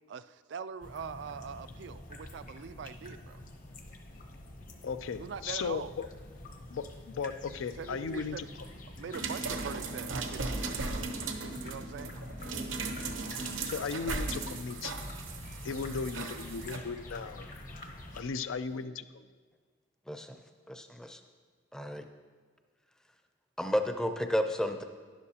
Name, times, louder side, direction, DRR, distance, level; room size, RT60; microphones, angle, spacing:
voice 1, 0.1-3.4 5.2-6.0 7.8-8.5 8.9-12.2, right 6 dB, 65° right, 13 dB, 0.3 m, -43 dB
sound 1, 0.8-18.2, left 1 dB, 45° left, 0.8 m, -47 dB
voice 2, 4.8-6.1 6.7-8.5 13.6-14.9 15.6-17.5 18.1-19.2, left 5 dB, 90° left, 12 dB, 0.4 m, -36 dB
sound 2, 9.1-16.8 17.8-17.9, right 3 dB, 80° right, 0.8 m, -37 dB
voice 3, 20.1-20.4 20.7-21.2 21.7-22.1 23.6-24.8, equal, 5° left, 6 dB, 0.5 m, -32 dB
11.5 x 10.5 x 2.8 m, 1.5 s
head